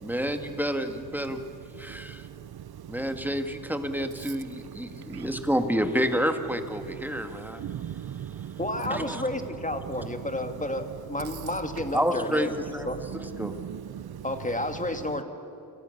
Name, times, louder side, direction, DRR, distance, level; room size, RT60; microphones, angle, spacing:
voice 1, 0.0-1.4 1.8-2.2 2.9-7.6 8.9-9.2 11.9-12.9 13.4-13.6, equal, 5° right, 2.0 m, -29 dB
voice 2, 7.6-8.5 13.4-14.2, right 10 dB, 75° right, 0.6 m, -37 dB
voice 3, 8.6-12.6 12.9-13.0 14.2-15.2, left 1 dB, 20° left, 2.3 m, -31 dB
29.5 x 24.5 x 6.6 m
wide cardioid pair, 85°, 38 cm